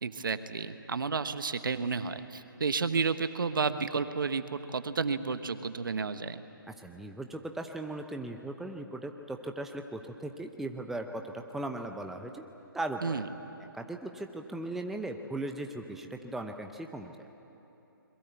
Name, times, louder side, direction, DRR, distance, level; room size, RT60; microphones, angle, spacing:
voice 1, 0.0-6.4 13.0-13.3, right 5 dB, 65° right, 10 dB, 1.3 m, -31 dB
voice 2, 6.7-12.4 12.7-13.2 13.6-17.3, right 2 dB, ahead, 4 dB, 0.8 m, -38 dB
26.5 x 22.0 x 8.2 m, 3.0 s
figure-of-eight pair, 140°, 12 cm